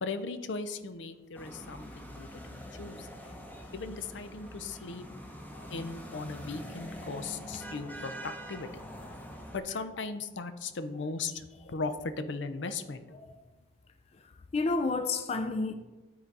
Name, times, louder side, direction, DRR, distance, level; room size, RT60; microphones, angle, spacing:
voice 1, 0.0-3.1 3.7-5.0 5.7-8.8 9.1-9.2 9.5-13.2, left 4 dB, 80° left, 0.6 m, -38 dB
sound 1, 1.3-9.6, equal, 10° left, 0.8 m, -44 dB
voice 2, 14.5-15.7, left 3 dB, 35° left, 0.3 m, -30 dB
10.0 x 3.9 x 4.6 m
head